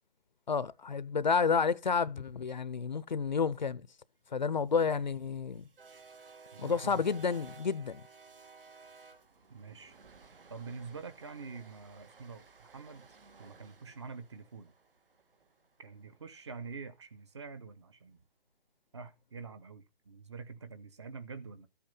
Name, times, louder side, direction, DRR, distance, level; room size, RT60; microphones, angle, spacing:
voice 1, 0.5-3.8 4.3-5.7 6.6-8.0, left 5 dB, 50° left, 0.7 m, -30 dB
sound 1, 4.5-16.7, right 5 dB, 65° right, 2.4 m, -56 dB
voice 2, 6.5-7.1 9.5-10.0 10.5-14.7 15.8-18.2 18.9-21.7, right 4 dB, 30° right, 1.0 m, -46 dB
13.5 x 8.7 x 5.4 m
hypercardioid pair, 170°, 30 cm